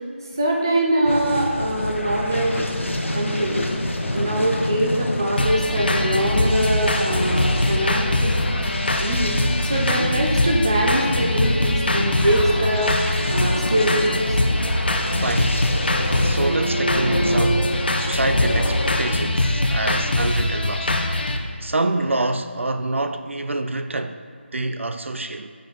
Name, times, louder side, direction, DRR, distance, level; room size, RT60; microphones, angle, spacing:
voice 1, 0.3-2.7 3.1-3.6 4.1-8.6 9.0-9.4 9.6-12.9 13.3-14.4, right 1 dB, 20° right, 0.5 m, -23 dB
sound 1, 1.0-19.1, left 1 dB, 80° left, 0.9 m, -28 dB
voice 2, 4.1-4.4 10.0-10.3 15.2-15.8 16.1-24.2 24.5-25.5, right 2 dB, 75° right, 0.4 m, -27 dB
sound 2, 5.4-21.4, left 1 dB, 50° left, 0.7 m, -23 dB
sound 3, 15.0-15.8 16.0-17.7, right 2 dB, 50° right, 1.0 m, -30 dB
9.7 x 5.1 x 3.0 m
figure-of-eight pair, 175°, 7 cm